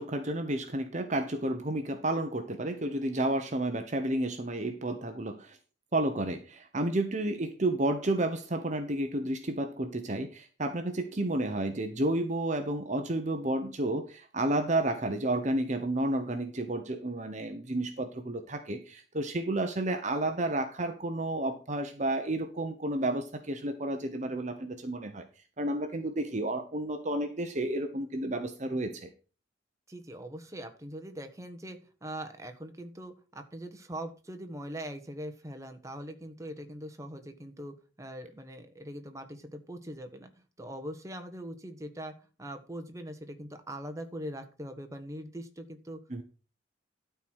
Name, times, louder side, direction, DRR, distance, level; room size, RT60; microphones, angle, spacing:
voice 1, 0.0-5.6 5.9-25.2 25.6-29.1 46.1-46.2, right 1 dB, 40° right, 7 dB, 1.0 m, -31 dB
voice 2, 29.9-40.3 40.6-42.1 42.4-46.2, right 1 dB, 15° right, 6 dB, 1.3 m, -42 dB
12.5 x 4.6 x 6.3 m, 0.35 s
head